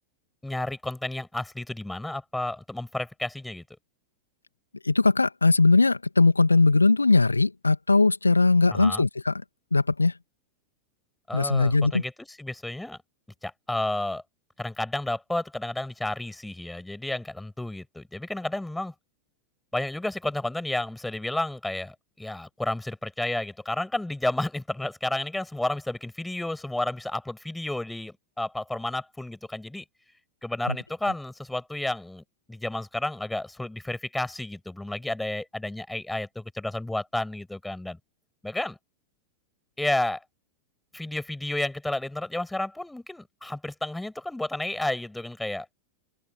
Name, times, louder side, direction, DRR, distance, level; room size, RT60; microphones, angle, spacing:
voice 1, 0.4-3.6 8.7-9.0 11.3-12.1 12.4-13.0 13.4-14.2 14.6-18.9 19.7-29.8 30.4-38.0 38.4-38.8 39.8-40.2 40.9-45.7, left 1 dB, 5° left, 6.5 m, -31 dB
voice 2, 4.8-9.4 9.7-10.1 11.3-12.0 30.7-30.8, left 3 dB, 80° left, 2.1 m, -20 dB
open air
figure-of-eight pair, 90°, 0 cm